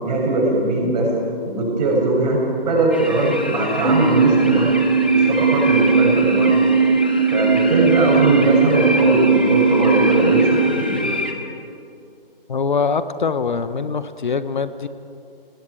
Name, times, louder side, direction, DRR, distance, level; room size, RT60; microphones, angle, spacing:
voice 1, 0.0-1.1 1.4-4.7 5.1-6.5 7.3-11.1, right 2 dB, 45° right, -2 dB, 6.8 m, -20 dB
sound 1, 2.9-11.3, left 1 dB, 10° left, 0.4 m, -29 dB
sound 2, 3.8-10.7, right 5 dB, 90° right, 4.5 m, -18 dB
voice 2, 12.5-14.9, left 5 dB, 55° left, 13 dB, 1.0 m, -23 dB
29.5 x 19.0 x 4.8 m, 2.5 s
figure-of-eight pair, 145°, 30 cm